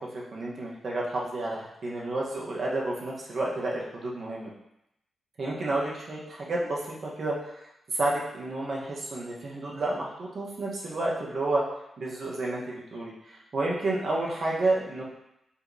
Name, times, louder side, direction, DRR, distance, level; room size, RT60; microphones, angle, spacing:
voice 1, 0.0-4.5 5.4-7.5 7.9-11.6 12.0-15.0, right 2 dB, 55° right, -4 dB, 1.1 m, -30 dB
5.5 x 2.9 x 2.7 m, 0.82 s
cardioid pair, 85°, 0 cm